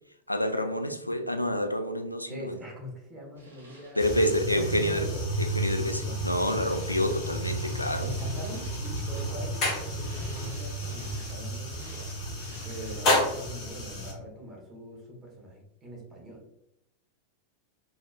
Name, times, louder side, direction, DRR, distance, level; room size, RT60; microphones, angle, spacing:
voice 1, 0.3-2.6 4.0-5.1 5.4-8.1, left 1 dB, 85° left, 0.3 m, -28 dB
voice 2, 2.3-5.2 5.7-6.2 8.0-12.3 12.6-16.5, equal, 20° right, 1.1 m, -43 dB
sound 1, 3.4-13.6, right 1 dB, 70° right, 1.2 m, -51 dB
sound 2, 4.0-14.1, equal, 35° left, 1.2 m, -31 dB
4.1 x 2.8 x 2.5 m
figure-of-eight pair, 90°, 0 cm